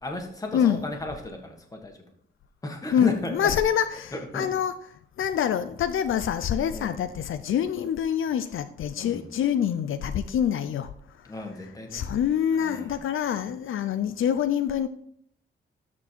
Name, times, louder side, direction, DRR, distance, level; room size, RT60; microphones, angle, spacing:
voice 1, 0.0-2.0 2.6-3.5 4.1-4.5 6.7-7.0 8.9-9.3 11.2-12.0 12.5-13.0, left 2 dB, 15° left, 1.5 m, -35 dB
voice 2, 2.9-4.7 5.2-10.9 11.9-14.9, left 9 dB, 75° left, 0.5 m, -26 dB
13.0 x 4.5 x 4.5 m
wide cardioid pair, 165°, 21 cm